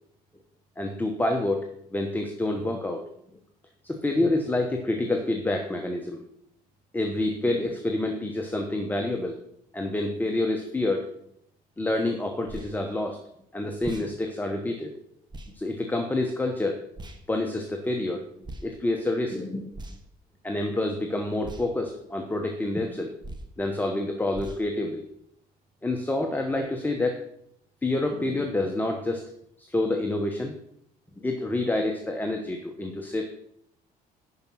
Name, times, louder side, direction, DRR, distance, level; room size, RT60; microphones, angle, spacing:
voice 1, 0.8-1.7 1.9-3.0 3.8-6.2 6.9-9.4 9.7-11.1 11.8-13.2 13.5-14.9 15.5-16.8 17.3-18.2 18.6-19.7 20.4-23.1 23.6-25.0 25.8-27.2 27.8-29.3 29.6-30.5 31.2-33.3, left 2 dB, 10° left, 3 dB, 1.0 m, -28 dB
sound 1, 12.5-12.7 13.8-14.1 15.3-15.5 17.0-17.2 18.4-18.7 19.7-20.2 21.4-21.7 23.2-23.5 24.3-24.6, right 1 dB, 25° right, 1.4 m, -40 dB
11.5 x 5.1 x 6.2 m, 0.73 s
cardioid pair, 110°, 17 cm